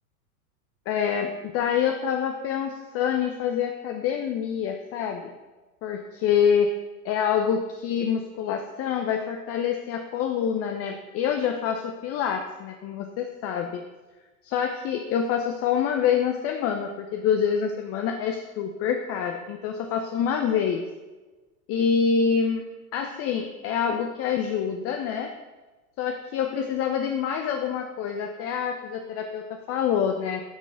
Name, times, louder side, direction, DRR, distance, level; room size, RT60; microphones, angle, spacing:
voice 1, 0.9-5.3 5.8-6.7 7.0-13.8 14.4-20.8 21.7-22.6 22.9-25.3 26.0-30.4, left 7 dB, 30° left, 4 dB, 0.8 m, -26 dB
10.0 x 6.2 x 5.1 m, 1.2 s
figure-of-eight pair, 90°, 46 cm